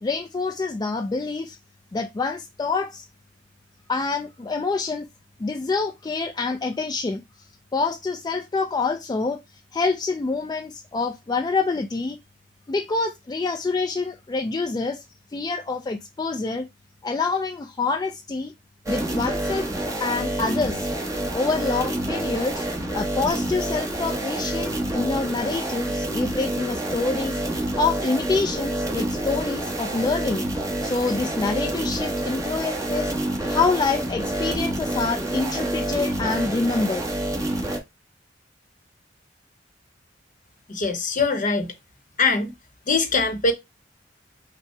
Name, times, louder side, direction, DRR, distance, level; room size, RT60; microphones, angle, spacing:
voice 1, 0.0-1.6 1.9-3.1 3.9-5.0 5.4-7.2 7.7-9.4 9.7-12.2 12.7-15.0 15.3-16.7 17.0-18.5 18.9-19.7 20.0-20.9 21.3-22.6 22.9-30.5 30.8-33.1 33.5-37.0, left 3 dB, 20° left, 0.3 m, -26 dB
sound 1, 18.9-37.8, right 1 dB, 20° right, 1.0 m, -28 dB
voice 2, 40.7-41.7 42.2-42.5 42.9-43.5, left 4 dB, 45° left, 0.8 m, -22 dB
5.4 x 2.1 x 4.4 m
head